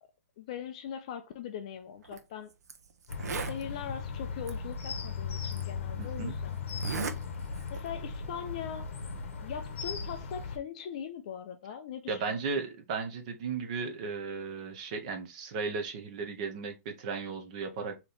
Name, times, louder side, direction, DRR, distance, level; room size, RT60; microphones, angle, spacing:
voice 1, 0.4-2.5 3.3-6.6 7.7-8.9 9.4-12.4, left 8 dB, 25° left, 0.4 m, -41 dB
Zipper (clothing), 2.0-2.2 2.7-2.8 3.0-3.6 4.5-4.6 5.5-5.6 6.7-7.2 7.5-7.9, right 6 dB, 90° right, 0.7 m, -35 dB
sound 1, 3.1-10.6, left 5 dB, 50° left, 0.8 m, -37 dB
voice 2, 6.0-6.3 12.1-18.0, right 4 dB, 25° right, 0.6 m, -35 dB
3.9 x 2.9 x 3.3 m
hypercardioid pair, 180°, 8 cm